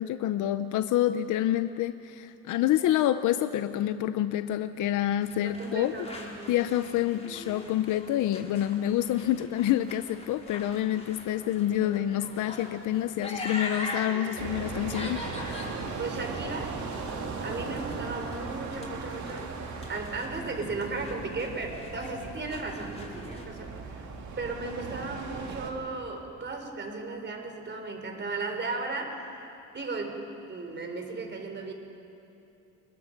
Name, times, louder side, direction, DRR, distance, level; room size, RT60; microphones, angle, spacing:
voice 1, 0.0-6.1 6.5-15.3, left 12 dB, 80° left, 11 dB, 0.7 m, -27 dB
sound 1, 5.2-23.5, left 2 dB, 20° left, 3.9 m, -43 dB
voice 2, 5.4-6.6 16.0-17.1 17.4-19.5 19.9-24.1 24.4-31.7, right 3 dB, 35° right, 4 dB, 3.9 m, -36 dB
sound 2, 14.4-25.7, right 4 dB, 70° right, 2.5 m, -38 dB
29.0 x 21.5 x 5.3 m, 2.9 s
cardioid pair, 90°, 30 cm